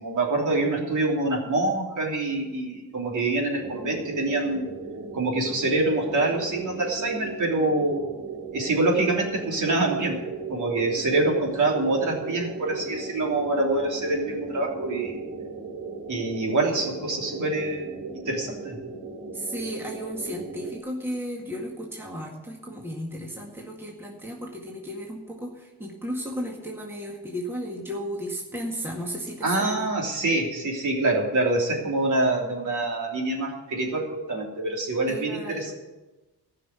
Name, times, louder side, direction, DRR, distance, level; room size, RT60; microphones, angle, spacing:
voice 1, 0.0-4.7 5.1-8.1 8.5-10.2 10.5-15.2 16.1-17.9 18.1-18.8 29.4-35.7, right 2 dB, 50° right, -1 dB, 3.2 m, -25 dB
sound 1, 3.6-20.8, right 4 dB, 70° right, 2.7 m, -37 dB
voice 2, 19.3-29.9 35.1-35.7, equal, 5° right, -1 dB, 1.9 m, -34 dB
15.0 x 5.9 x 9.5 m, 1.1 s
cardioid pair, 130°, 40 cm